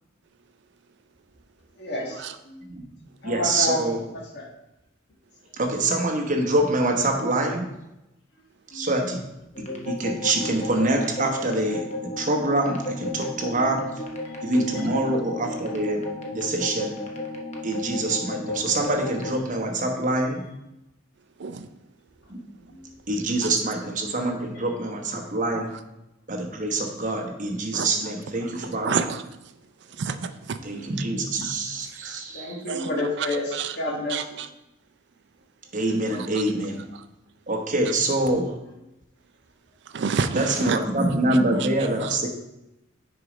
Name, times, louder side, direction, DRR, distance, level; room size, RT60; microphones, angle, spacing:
voice 1, 1.8-2.6 3.2-4.5 8.7-8.9 14.7-14.9 32.3-34.4, left 2 dB, 55° left, -1 dB, 1.4 m, -30 dB
voice 2, 3.2-4.0 5.6-7.6 8.7-9.2 9.9-13.9 14.4-16.0 16.3-16.9 17.6-20.4 22.3-22.4 23.1-25.7 26.3-28.9 30.6-32.5 35.7-36.8 37.5-38.5 40.3-42.3, right 2 dB, 40° right, 2 dB, 1.0 m, -25 dB
sound 1, 9.5-19.4, left 2 dB, 35° left, 0.8 m, -34 dB
voice 3, 28.4-29.2 30.0-30.6 31.4-31.5 32.0-32.2 32.7-33.8 34.1-34.5 36.2-36.4 36.9-37.0 39.9-40.8 41.6-41.7 42.0-42.2, right 6 dB, 60° right, 9 dB, 0.4 m, -30 dB
6.5 x 4.1 x 5.0 m, 0.92 s
head